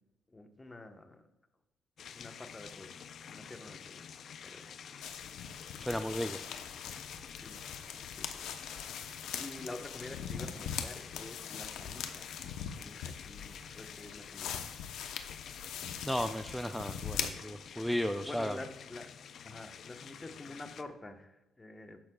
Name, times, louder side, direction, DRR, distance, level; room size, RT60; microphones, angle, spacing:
voice 1, 0.3-1.2 2.1-3.0 3.3-4.0 4.4-4.7 7.3-7.8 8.1-8.5 8.8-12.4 12.6-14.6 17.7-19.1 19.4-22.0, left 2 dB, 20° left, 6 dB, 1.2 m, -48 dB
sound 1, 2.0-20.8, left 7 dB, 60° left, 0.5 m, -49 dB
sound 2, 5.0-17.3, left 8 dB, 85° left, 0.9 m, -42 dB
voice 2, 5.8-6.4 16.0-18.6, equal, ahead, 7 dB, 0.5 m, -34 dB
14.0 x 10.5 x 2.4 m, 0.99 s
cardioid pair, 90°, 0 cm